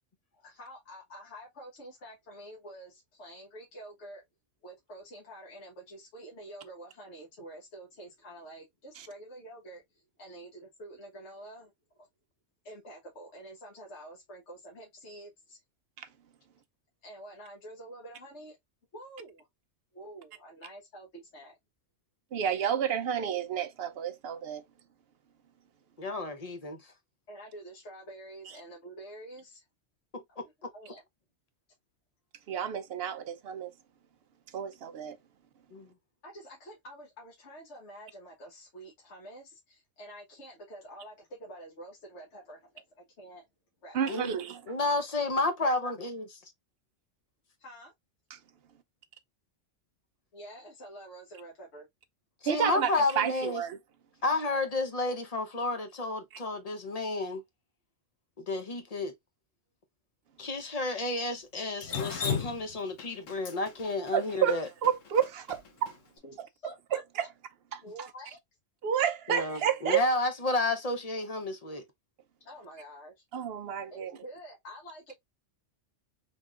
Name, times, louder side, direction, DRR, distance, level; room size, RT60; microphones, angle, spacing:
voice 1, 0.3-4.2 4.6-12.1 12.6-15.6 17.0-18.6 18.9-19.5 19.9-21.6 27.3-29.6 30.7-31.0 36.2-43.4 43.8-44.3 47.6-47.9 50.3-51.9 66.2-67.3 67.8-68.4 72.4-73.2 73.9-75.1, right 1 dB, 65° left, 1.6 m, -48 dB
voice 2, 22.3-24.6 32.5-33.7 34.5-35.2 43.9-44.6 48.3-48.4 52.4-53.8 64.1-65.9 67.7-67.8 68.8-70.0 73.3-74.1, right 8 dB, 60° right, 0.7 m, -30 dB
voice 3, 26.0-26.8 30.1-30.4 35.7-35.9 44.1-44.4 44.7-46.3 52.4-53.6 54.2-57.4 58.4-59.1 60.4-64.7 69.3-71.8, left 2 dB, 35° left, 0.7 m, -31 dB
Drip, 61.8-65.9, left 7 dB, 80° left, 1.3 m, -35 dB
3.5 x 3.5 x 2.4 m
omnidirectional pair, 1.3 m